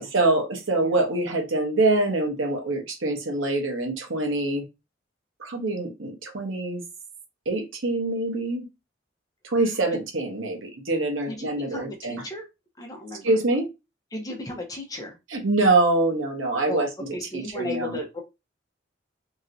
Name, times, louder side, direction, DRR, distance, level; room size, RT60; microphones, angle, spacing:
voice 1, 0.0-4.6 5.4-6.8 7.5-8.7 9.4-12.2 13.2-13.7 15.3-18.0, right 2 dB, 90° right, 2 dB, 1.0 m, -25 dB
voice 2, 11.3-12.4 12.8-13.4 14.1-15.1 16.7-18.2, left 1 dB, 20° left, 2 dB, 0.8 m, -35 dB
3.0 x 2.9 x 2.6 m, 0.24 s
head